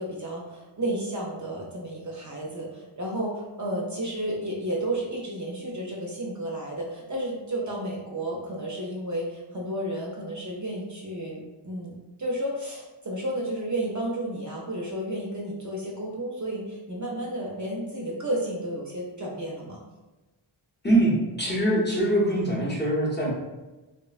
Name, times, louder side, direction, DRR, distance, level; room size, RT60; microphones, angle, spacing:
voice 1, 0.0-19.8, right 1 dB, 40° right, -3 dB, 0.5 m, -32 dB
voice 2, 20.8-23.3, right 1 dB, 20° left, -5 dB, 0.7 m, -23 dB
3.0 x 2.1 x 2.3 m, 1.1 s
wide cardioid pair, 70°, 49 cm